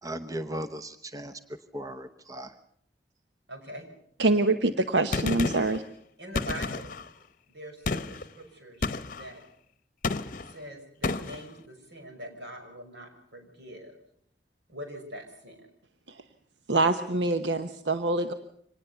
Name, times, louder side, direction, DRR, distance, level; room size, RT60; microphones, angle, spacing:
voice 1, 0.0-2.5, right 1 dB, 20° right, 9 dB, 0.9 m, -37 dB
voice 2, 3.5-3.9 6.2-7.0 7.5-9.4 10.4-14.0 14.7-15.7, right 1 dB, 70° right, 4 dB, 5.9 m, -43 dB
voice 3, 4.2-5.8 16.7-18.3, right 2 dB, 90° right, 9 dB, 1.0 m, -25 dB
Gunshot gunfire, 5.1-5.8 6.4-7.1 7.9-8.3 8.8-9.3 10.0-10.5 11.0-11.4, left 3 dB, 50° left, 0.9 m, -31 dB
25.0 x 19.0 x 7.0 m, 0.67 s
head